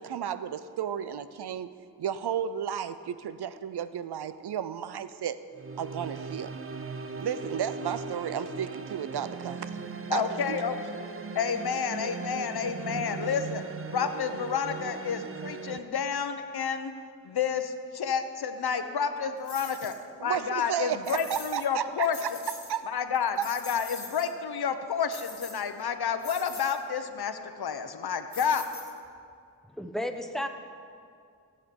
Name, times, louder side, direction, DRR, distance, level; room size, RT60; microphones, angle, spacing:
voice 1, 0.0-1.7 2.0-5.4 5.8-6.6 7.2-9.8 10.1-10.7 19.7-19.8 20.2-22.3 22.7-22.8 23.4-23.5, right 9 dB, 80° right, 13 dB, 0.6 m, -33 dB
sound 1, 5.5-15.8, right 4 dB, 35° right, 0.7 m, -38 dB
voice 2, 10.1-10.8 11.3-13.6 13.9-16.9 17.2-19.9 20.2-22.2 22.9-28.6, left 7 dB, 70° left, 9 dB, 0.9 m, -30 dB
sound 2, 19.4-20.0 21.0-21.7 22.0-22.8 23.2-24.3 25.1-25.8 26.2-26.8 28.3-29.2, left 4 dB, 45° left, 2.2 m, -43 dB
voice 3, 29.8-30.5, left 1 dB, ahead, 5 dB, 1.0 m, -32 dB
17.5 x 8.3 x 5.3 m, 2.3 s
cardioid pair, 65°, 39 cm